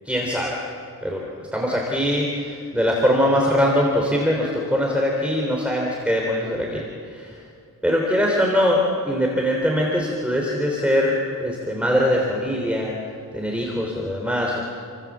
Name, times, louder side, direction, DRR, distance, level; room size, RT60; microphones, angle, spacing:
voice 1, 0.1-0.6 1.0-1.2 1.5-6.8 7.1-7.4 7.8-12.9 13.3-14.6, equal, 5° right, -1 dB, 3.5 m, -22 dB
30.0 x 24.5 x 7.5 m, 2.4 s
wide cardioid pair, 155°, 35 cm